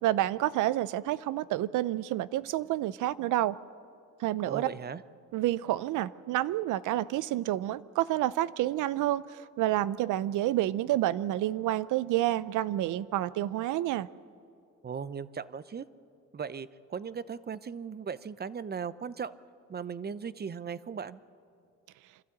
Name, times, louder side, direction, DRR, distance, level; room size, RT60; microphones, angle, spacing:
voice 1, 0.0-3.6 4.2-4.7 5.3-14.1, right 14 dB, 85° right, 18 dB, 0.6 m, -29 dB
voice 2, 4.4-5.0 14.8-15.8 16.3-19.3 19.7-21.2, right 6 dB, 35° right, 16 dB, 0.7 m, -37 dB
26.5 x 12.5 x 8.6 m, 2.4 s
cardioid pair, 90°, 30 cm